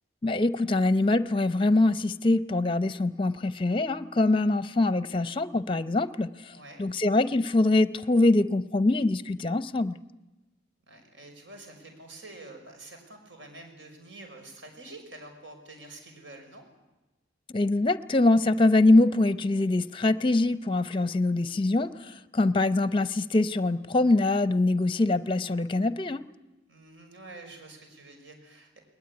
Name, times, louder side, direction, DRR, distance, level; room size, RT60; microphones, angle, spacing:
voice 1, 0.2-10.0 17.5-26.2, left 2 dB, 25° left, 14 dB, 0.7 m, -24 dB
voice 2, 6.5-6.8 10.9-16.7 26.7-28.8, right 2 dB, 65° right, 4 dB, 6.0 m, -47 dB
20.5 x 20.0 x 9.8 m, 1.1 s
head